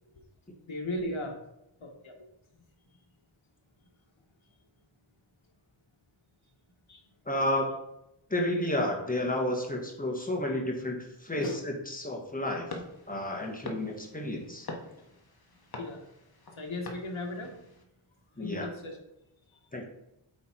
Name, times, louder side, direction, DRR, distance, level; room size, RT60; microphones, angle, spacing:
voice 1, 0.7-1.4 1.8-2.1 6.9-7.0 11.4-11.6 15.8-16.0 16.6-17.7 18.4-19.0 19.5-19.6, left 1 dB, 70° left, 1 dB, 1.5 m, -36 dB
voice 2, 7.2-7.7 8.3-12.7 13.1-14.7 18.4-18.7 19.7-19.9, left 1 dB, 15° left, 0 dB, 1.5 m, -31 dB
sound 1, 12.7-17.8, left 2 dB, 45° left, 1.3 m, -45 dB
8.1 x 3.6 x 4.5 m, 0.85 s
wide cardioid pair, 95°, 50 cm